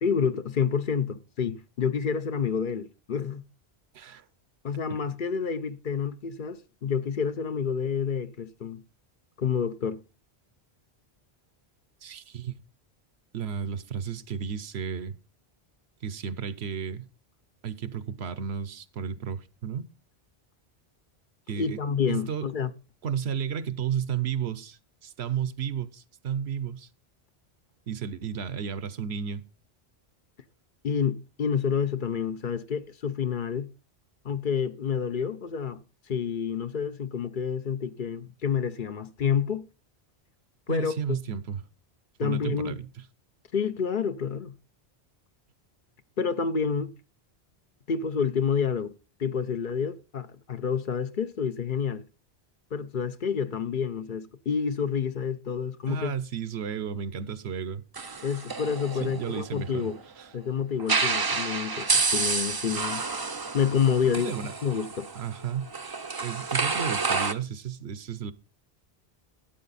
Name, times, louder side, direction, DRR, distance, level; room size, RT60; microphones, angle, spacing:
voice 1, 0.0-3.4 4.6-8.8 9.4-10.0 21.6-22.7 30.8-33.7 34.2-35.8 36.1-39.7 40.7-41.2 42.2-42.8 43.5-44.5 46.2-46.9 47.9-48.9 49.2-52.0 52.7-56.1 58.2-60.0 60.3-63.0 63.5-64.4 64.6-65.1, left 6 dB, 55° left, 0.8 m, -28 dB
voice 2, 12.0-12.5 13.3-15.2 16.0-17.1 17.6-19.9 21.5-21.8 22.1-22.5 23.0-26.9 27.9-29.4 40.7-41.6 42.2-42.9 55.9-57.8 59.0-59.9 60.2-60.3 64.0-64.5 65.1-65.7 66.2-68.3, right 7 dB, 80° right, 1.0 m, -33 dB
sound 1, 58.0-60.0 60.8-67.3, right 4 dB, 30° right, 0.5 m, -29 dB
13.0 x 8.7 x 4.1 m
omnidirectional pair, 1.1 m